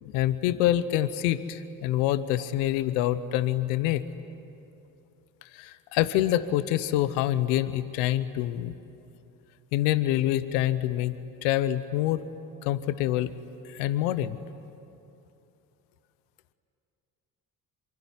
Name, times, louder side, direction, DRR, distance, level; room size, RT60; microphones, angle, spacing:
voice 1, 0.0-4.0 5.5-8.7 9.7-12.2 12.6-13.3 13.7-14.4, left 13 dB, 85° left, 15 dB, 0.9 m, -26 dB
25.5 x 24.0 x 9.7 m, 2.8 s
hypercardioid pair, 50°, 45 cm